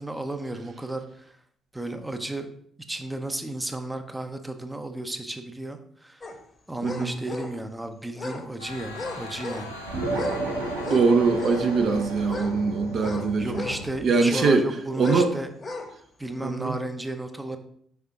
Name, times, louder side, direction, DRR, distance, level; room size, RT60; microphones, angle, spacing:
voice 1, 0.0-1.4 1.7-2.5 2.9-6.3 6.7-9.8 13.4-15.5 16.2-17.6, right 1 dB, 10° right, 8 dB, 0.7 m, -33 dB
sound 1, 6.2-6.4 6.8-7.6 8.1-8.5 8.9-9.7 10.1-10.4 10.8-11.7 12.2-13.8 14.2-14.6 14.9-15.3 15.6-15.9 16.3-16.4, left 3 dB, 30° left, 1.0 m, -36 dB
voice 2, 6.8-7.1 10.9-13.6 14.0-14.6 15.0-15.3 16.4-16.8, right 4 dB, 50° right, 5 dB, 0.7 m, -22 dB
sound 2, 8.6-14.0, left 2 dB, 90° left, 0.7 m, -39 dB
sound 3, 9.9-14.7, right 2 dB, 70° right, 1.8 m, -33 dB
5.7 x 5.4 x 3.7 m, 0.64 s
figure-of-eight pair, 45°, 0 cm